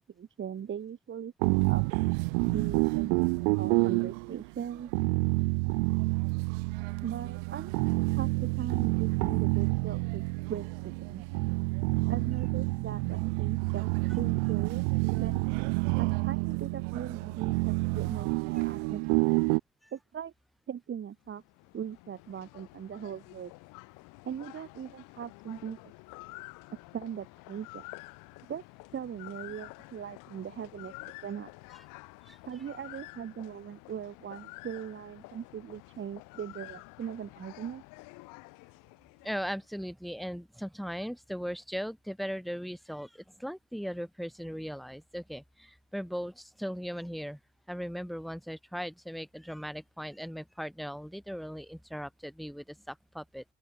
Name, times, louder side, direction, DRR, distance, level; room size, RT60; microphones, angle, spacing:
voice 1, 0.0-1.8 2.4-4.9 7.0-7.7 8.2-10.2 10.5-11.2 12.1-13.9 14.1-15.4 16.0-19.3 19.9-20.3 20.7-21.4 21.7-23.5 24.2-25.8 26.7-27.9 28.5-28.6 28.9-30.9 31.2-31.5 32.4-37.8, right 8 dB, 35° right, 1.4 m, -40 dB
sound 1, 1.4-19.6, right 34 dB, 75° right, 0.5 m, -28 dB
sound 2, 21.3-39.7, left 26 dB, 70° left, 3.2 m, -50 dB
voice 2, 39.2-47.4 47.7-53.4, equal, ahead, 6.1 m, -38 dB
open air
hypercardioid pair, 65°, 33 cm